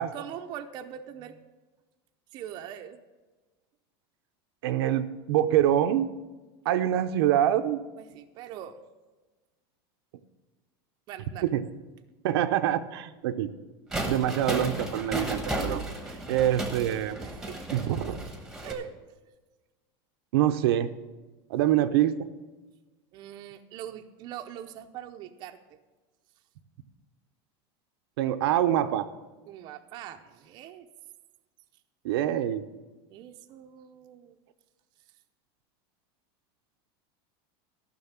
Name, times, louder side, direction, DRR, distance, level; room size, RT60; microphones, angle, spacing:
voice 1, 0.1-1.4 2.3-3.0 8.0-8.8 11.1-11.5 17.2-17.6 18.6-18.9 23.1-25.8 29.5-30.9 33.1-34.4, right 10 dB, 35° right, 6 dB, 0.6 m, -42 dB
voice 2, 4.6-6.1 6.7-7.8 11.4-11.6 12.2-13.5 14.1-15.8 16.3-17.2 17.7-18.2 20.3-20.9 21.5-22.3 28.2-29.1 32.0-32.6, right 11 dB, 70° right, 9 dB, 0.7 m, -25 dB
sound 1, 13.9-18.7, right 1 dB, 5° right, 1.1 m, -34 dB
13.5 x 6.3 x 7.3 m, 1.2 s
supercardioid pair, 170°, 13 cm